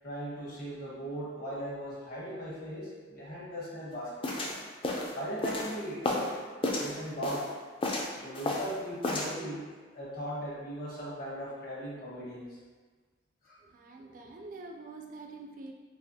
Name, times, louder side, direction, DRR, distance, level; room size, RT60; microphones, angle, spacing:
voice 1, 0.0-4.3 5.1-6.4 6.8-7.5 8.2-12.6 13.4-13.6, equal, 50° left, -6 dB, 1.0 m, -38 dB
sound 1, 4.2-6.3 6.6-7.5 7.8-8.7 9.0-9.3, left 2 dB, 30° left, 0.4 m, -32 dB
voice 2, 13.7-15.7, right 3 dB, 45° right, 2 dB, 0.3 m, -45 dB
4.0 x 2.8 x 2.7 m, 1.4 s
head